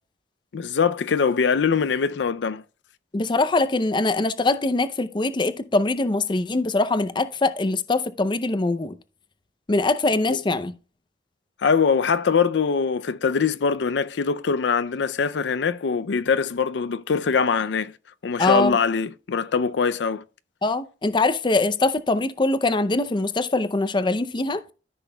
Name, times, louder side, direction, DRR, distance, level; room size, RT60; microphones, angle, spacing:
voice 1, 0.5-2.6 10.3-10.4 11.6-17.9 18.2-20.2, left 5 dB, 85° left, 0.5 m, -22 dB
voice 2, 3.1-8.9 9.7-10.7 18.4-18.8 20.6-24.6, left 2 dB, 25° left, 0.5 m, -23 dB
13.5 x 6.0 x 2.2 m
head